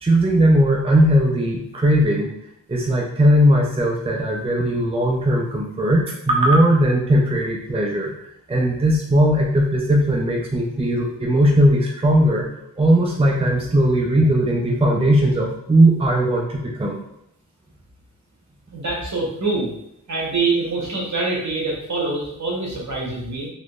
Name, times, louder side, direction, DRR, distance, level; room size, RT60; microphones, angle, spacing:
voice 1, 0.0-2.3 2.7-8.1 8.5-12.5 12.8-16.9, right 1 dB, 15° right, -1 dB, 0.6 m, -18 dB
voice 2, 18.7-19.7 20.1-23.5, right 3 dB, 55° right, -3 dB, 1.3 m, -24 dB
3.8 x 3.1 x 2.5 m, 0.77 s
cardioid pair, 55°, 33 cm